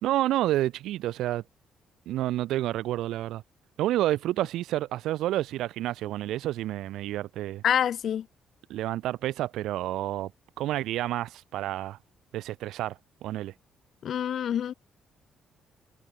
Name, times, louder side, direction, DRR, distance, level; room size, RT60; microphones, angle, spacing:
voice 1, 0.0-1.4 2.1-3.4 3.8-7.6 8.7-10.3 10.6-12.0 12.3-13.5, right 14 dB, 85° right, 1.4 m, -29 dB
voice 2, 7.6-8.3 14.0-14.7, left 9 dB, 50° left, 1.2 m, -26 dB
cardioid pair, 155°, 0 cm